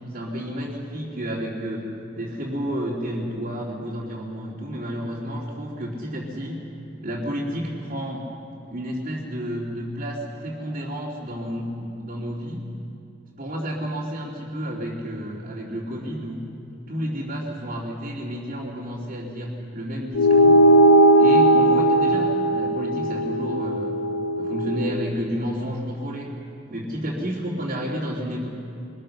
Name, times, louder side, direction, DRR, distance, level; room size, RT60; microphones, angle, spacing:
voice 1, 0.0-6.6 7.0-8.3 8.7-12.6 13.4-16.4 16.9-20.7 21.2-24.0 24.4-26.3 26.7-28.5, equal, 40° right, -5 dB, 3.0 m, -31 dB
sound 1, 20.1-25.0, right 1 dB, 75° left, 1.0 m, -18 dB
24.0 x 23.0 x 6.7 m, 2.6 s
head